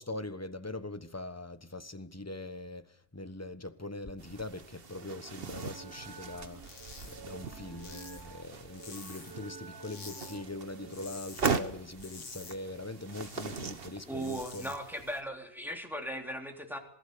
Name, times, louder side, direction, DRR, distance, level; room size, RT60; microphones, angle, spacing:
voice 1, 0.0-6.7 7.0-14.8, left 2 dB, 15° left, 1.2 m, -42 dB
sound 1, 4.2-15.2, right 5 dB, 55° right, 1.4 m, -40 dB
sound 2, 5.6-11.2, right 4 dB, 20° right, 1.1 m, -51 dB
sound 3, 6.6-7.2 7.4-9.5 9.8-10.4 10.7-11.5 11.8-13.6 14.0-14.8, left 4 dB, 85° left, 2.1 m, -49 dB
voice 2, 14.1-16.8, right 1 dB, ahead, 3.4 m, -38 dB
26.5 x 19.0 x 6.9 m
omnidirectional pair, 1.2 m